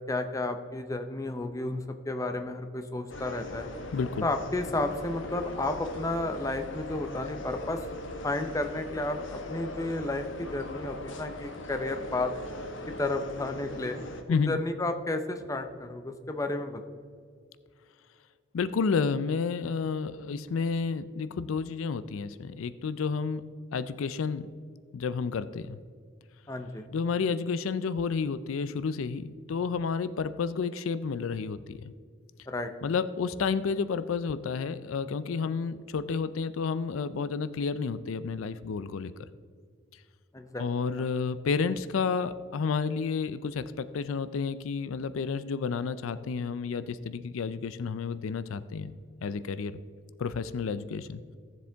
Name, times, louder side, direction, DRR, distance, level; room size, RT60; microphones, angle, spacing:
voice 1, 0.1-3.7 4.2-7.8 8.2-12.3 13.0-16.8 26.5-26.9 32.5-32.7 40.3-41.1, left 2 dB, 15° left, 7 dB, 0.6 m, -32 dB
sound 1, 3.1-14.2, left 1 dB, 70° left, 1.0 m, -40 dB
voice 2, 3.9-4.3 14.3-14.6 18.5-24.5 24.9-25.8 26.9-31.8 32.8-39.1 40.6-48.9 49.2-49.8 50.2-51.2, left 5 dB, 85° left, 14 dB, 0.4 m, -31 dB
15.5 x 7.3 x 3.4 m, 2.1 s
head